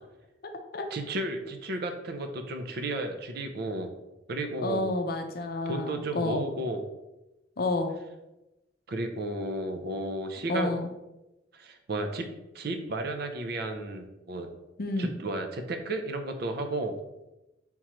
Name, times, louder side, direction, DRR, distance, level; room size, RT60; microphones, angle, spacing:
voice 1, 0.9-3.9 4.3-4.9 5.7-6.8 8.9-10.7 11.5-12.3 12.5-14.5 15.0-16.9, right 2 dB, 55° right, 6 dB, 0.5 m, -33 dB
voice 2, 4.6-6.4 7.6-8.0 10.5-10.9 14.8-15.1, left 2 dB, 55° left, 5 dB, 0.5 m, -29 dB
4.3 x 3.6 x 3.0 m, 0.98 s
head